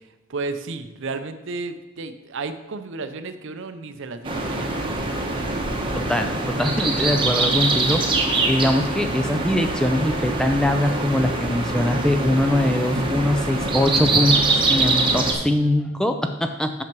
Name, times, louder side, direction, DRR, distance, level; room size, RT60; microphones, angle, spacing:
voice 1, 0.3-4.7, right 3 dB, 60° right, 10 dB, 0.6 m, -32 dB
sound 1, 4.2-15.3, right 2 dB, 25° right, 0.9 m, -23 dB
voice 2, 5.9-16.8, left 1 dB, 5° left, 6 dB, 0.3 m, -22 dB
6.0 x 5.8 x 6.0 m, 1.0 s
head